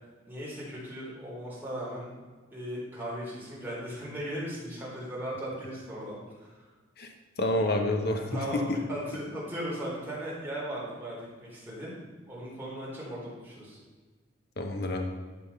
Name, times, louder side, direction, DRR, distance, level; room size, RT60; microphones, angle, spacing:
voice 1, 0.3-2.1 2.5-6.5 8.3-11.9 12.3-13.8, equal, 10° right, -6 dB, 3.7 m, -37 dB
voice 2, 7.4-8.8 14.6-15.1, left 1 dB, 55° left, 4 dB, 1.1 m, -28 dB
12.0 x 5.7 x 5.6 m, 1.4 s
head